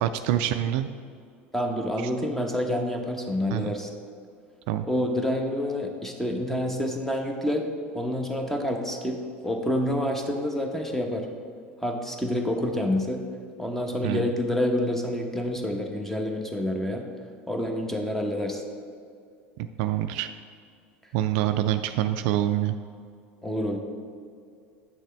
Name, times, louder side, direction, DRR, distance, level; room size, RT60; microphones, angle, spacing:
voice 1, 0.0-0.9 2.0-2.1 3.5-3.7 4.7-4.8 14.0-14.3 19.8-20.3 21.1-22.8, right 12 dB, 65° right, 9 dB, 0.3 m, -26 dB
voice 2, 1.5-3.9 4.9-7.6 7.9-11.3 11.8-13.2 13.6-17.1 17.5-18.6 23.4-23.8, left 1 dB, 5° left, 3 dB, 1.0 m, -28 dB
8.5 x 6.4 x 3.4 m, 2.3 s
hypercardioid pair, 85°, 7 cm